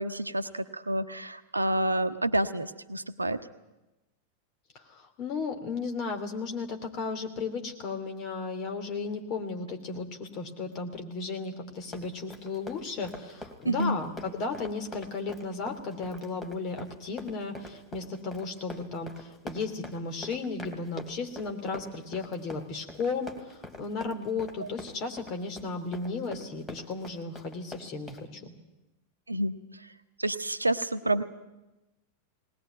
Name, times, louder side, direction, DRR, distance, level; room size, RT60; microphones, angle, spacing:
voice 1, 0.0-3.4 13.6-14.0 24.6-24.7 29.3-29.5 30.2-31.2, right 1 dB, 80° right, 11 dB, 0.9 m, -29 dB
voice 2, 4.7-28.5, left 4 dB, 35° left, 6 dB, 2.9 m, -35 dB
Run, 11.8-28.3, left 1 dB, 15° left, 2.8 m, -44 dB
20.0 x 19.0 x 9.2 m, 1.0 s
figure-of-eight pair, 90°, 0 cm